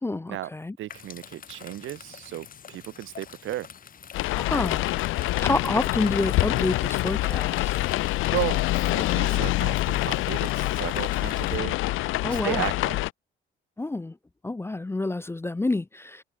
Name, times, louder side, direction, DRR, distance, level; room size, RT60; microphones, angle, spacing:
voice 1, 0.0-0.8 4.3-4.9 5.4-7.8 12.2-12.7 13.8-14.2 14.4-16.2, left 2 dB, 10° left, 0.5 m, -28 dB
voice 2, 0.8-3.7 8.3-11.8 12.3-13.0, right 14 dB, 85° right, 1.9 m, -34 dB
sound 1, 0.9-11.6, left 7 dB, 45° left, 1.2 m, -45 dB
sound 2, 4.1-13.1, left 18 dB, 90° left, 0.7 m, -26 dB
cardioid pair, 90°, 20 cm